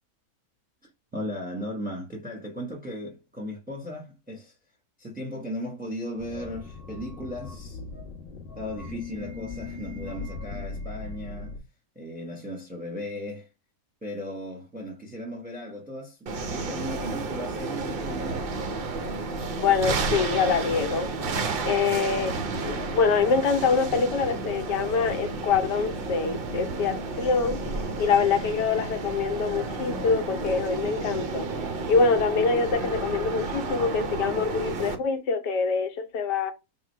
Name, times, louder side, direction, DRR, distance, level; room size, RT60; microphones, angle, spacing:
voice 1, 1.1-4.5 5.0-7.8 8.5-11.5 11.9-13.5 14.0-18.5, left 1 dB, 5° right, 0.8 m, -36 dB
sound 1, 6.2-11.6, left 4 dB, 40° left, 1.1 m, -39 dB
sound 2, 16.3-35.0, right 3 dB, 75° right, 0.5 m, -31 dB
voice 2, 19.6-21.1 21.6-22.3 22.6-27.6 28.0-31.5 31.9-36.5, left 5 dB, 80° left, 1.4 m, -25 dB
4.1 x 2.2 x 4.4 m
omnidirectional pair, 1.8 m